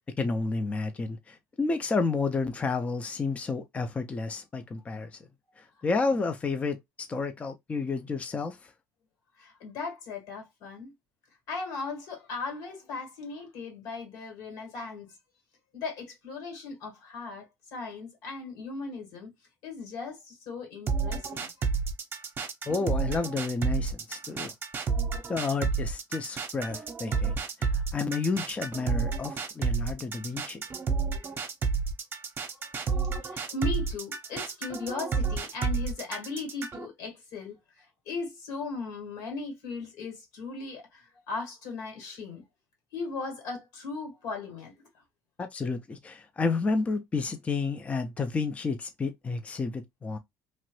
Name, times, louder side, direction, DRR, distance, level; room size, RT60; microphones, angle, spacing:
voice 1, 0.2-5.2 5.6-8.7 22.7-24.5 25.3-30.6 45.4-50.2, left 4 dB, 20° left, 0.4 m, -31 dB
voice 2, 9.4-10.9 11.5-15.2 15.7-19.3 19.6-21.5 32.5-42.5 42.9-45.0, left 4 dB, 80° left, 1.9 m, -38 dB
sound 1, 20.9-36.9, right 5 dB, 35° right, 0.7 m, -30 dB
2.9 x 2.5 x 3.0 m
cardioid pair, 125°, 6 cm